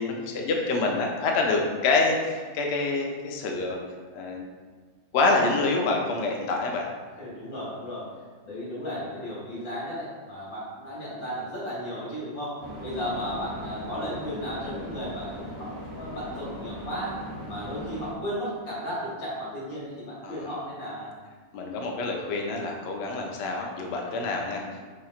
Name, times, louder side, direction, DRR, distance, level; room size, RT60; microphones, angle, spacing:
voice 1, 0.0-3.8 4.1-4.5 5.1-6.9 20.2-20.5 21.5-24.8, left 3 dB, 65° left, 1 dB, 0.7 m, -26 dB
voice 2, 7.2-8.1 8.4-17.2 17.5-21.1, equal, 85° left, -7 dB, 1.9 m, -34 dB
sound 1, 12.6-18.1, equal, 40° right, 1.3 m, -38 dB
5.0 x 2.8 x 2.3 m, 1.5 s
omnidirectional pair, 1.5 m